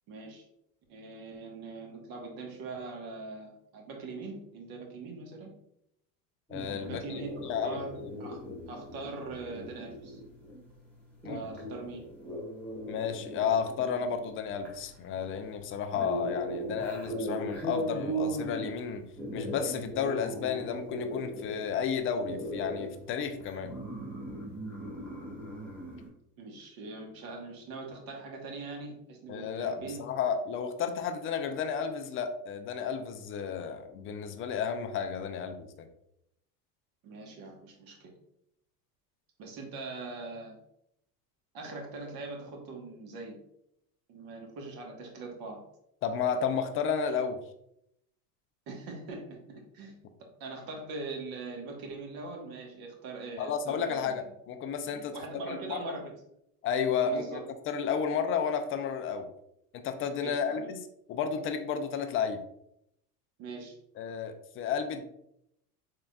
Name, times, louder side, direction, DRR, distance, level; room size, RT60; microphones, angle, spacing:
voice 1, 0.1-0.5 0.9-5.5 6.8-10.2 11.2-12.1 26.4-30.0 37.0-38.1 39.4-40.6 41.5-43.4 44.1-45.6 48.7-49.9 50.4-54.2 54.9-56.1 57.0-57.4 60.2-60.7 63.4-63.7, right 3 dB, 50° right, 1 dB, 1.2 m, -42 dB
voice 2, 6.5-7.8 8.5-8.6 11.2-11.4 12.9-19.0 19.3-23.7 29.3-35.9 46.0-47.4 53.4-55.1 55.5-55.9 56.6-59.3 59.7-60.8 61.1-62.4 64.0-65.1, left 6 dB, 30° left, 7 dB, 0.3 m, -32 dB
sound 1, 6.5-26.1, right 1 dB, 5° left, 1.2 m, -39 dB
3.8 x 3.4 x 2.3 m, 0.77 s
hypercardioid pair, 95°, 46 cm